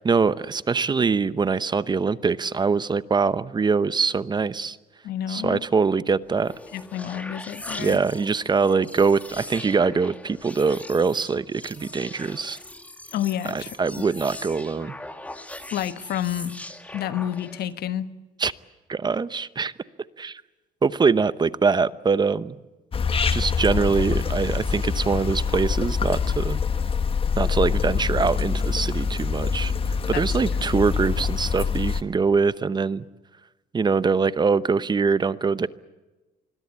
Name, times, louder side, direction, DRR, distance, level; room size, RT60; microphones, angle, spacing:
voice 1, 0.0-4.8 5.3-6.5 7.8-12.6 13.5-14.9 18.4-18.5 18.9-19.7 20.2-20.4 20.8-22.6 23.3-26.6 27.4-29.7 30.1-33.0 33.7-35.7, right 5 dB, 25° right, 15 dB, 0.8 m, -23 dB
voice 2, 5.0-5.6 6.7-8.0 13.1-13.7 15.7-16.6 16.9-18.1 30.1-30.2, left 11 dB, 70° left, 11 dB, 1.4 m, -29 dB
sound 1, 6.3-17.7, left 1 dB, 10° left, 2.2 m, -41 dB
sound 2, 22.9-32.0, left 5 dB, 35° left, 1.5 m, -25 dB
25.5 x 22.0 x 8.6 m, 1.1 s
cardioid pair, 110°, 17 cm